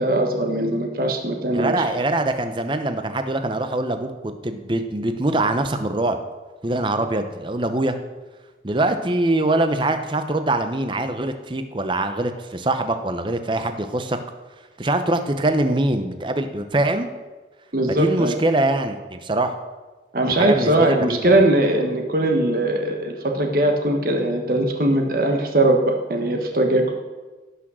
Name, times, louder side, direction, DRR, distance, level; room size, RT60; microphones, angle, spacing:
voice 1, 0.0-1.8 17.7-18.3 20.1-26.9, right 1 dB, 50° right, 3 dB, 1.2 m, -20 dB
voice 2, 1.5-6.2 6.6-8.0 8.6-14.2 14.8-17.1 17.9-19.5 20.3-21.4, right 2 dB, 25° right, 8 dB, 0.7 m, -23 dB
17.0 x 6.2 x 6.2 m, 1.3 s
head